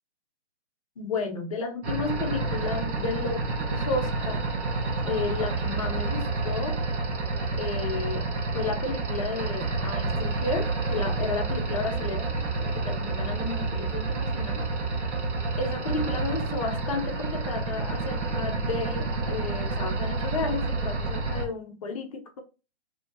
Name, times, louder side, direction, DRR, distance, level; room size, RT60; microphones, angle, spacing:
voice 1, 1.0-3.4 3.7-4.4 5.1-6.8 7.6-14.7 15.6-22.4, left 4 dB, 30° left, 0.6 m, -33 dB
sound 1, 1.8-21.4, right 3 dB, 80° right, 1.1 m, -29 dB
3.3 x 2.7 x 2.6 m
hypercardioid pair, 165°, 34 cm